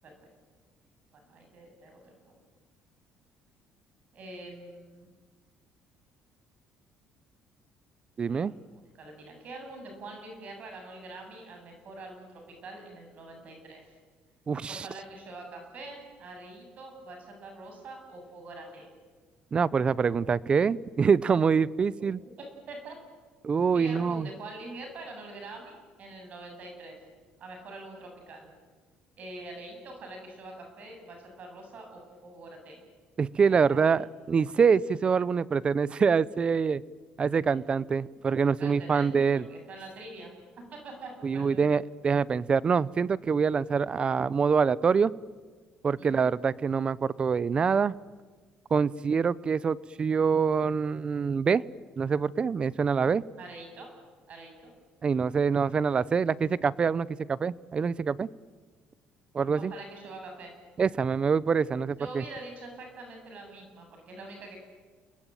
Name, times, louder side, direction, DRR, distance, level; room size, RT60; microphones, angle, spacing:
voice 1, 1.1-2.3 4.1-5.1 8.3-13.9 14.7-18.9 22.0-22.1 22.4-23.0 23.7-27.0 27.4-28.5 29.2-32.8 33.5-34.0 38.6-40.3 40.7-41.7 46.0-46.2 53.4-53.9 54.3-54.7 59.6-60.5 62.0-64.6, right 2 dB, 50° right, 3 dB, 7.9 m, -45 dB
voice 2, 8.2-8.5 14.5-14.9 19.5-22.2 23.4-24.3 33.2-36.8 37.2-39.4 41.2-45.1 45.8-47.9 48.7-51.6 52.0-53.2 55.0-58.3 59.3-59.7 60.8-62.2, right 6 dB, 35° right, 20 dB, 0.8 m, -25 dB
30.0 x 20.5 x 9.2 m, 1.5 s
cardioid pair, 115°, 3 cm